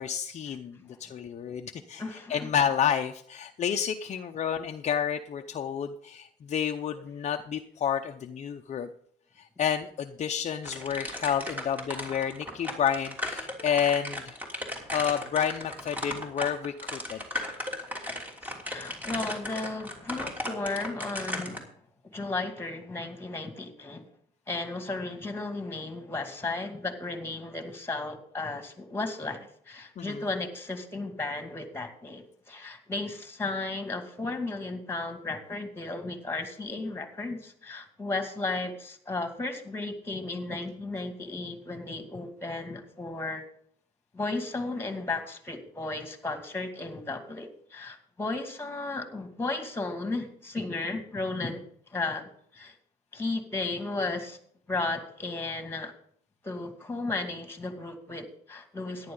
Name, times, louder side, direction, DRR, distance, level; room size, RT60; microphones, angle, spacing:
voice 1, 0.0-8.9 9.4-14.6 14.9-17.5 30.0-30.2, left 8 dB, 45° left, 5 dB, 0.7 m, -30 dB
voice 2, 2.0-2.5 18.4-21.7 22.1-24.0 24.5-43.4 44.1-51.6 51.9-52.7 53.1-54.4 54.7-55.9 56.4-59.1, left 3 dB, 15° left, 6 dB, 2.3 m, -34 dB
sound 1, 10.6-21.6, left 1 dB, 10° right, 2.9 m, -36 dB
14.0 x 10.5 x 3.9 m, 0.64 s
cardioid pair, 110°, 17 cm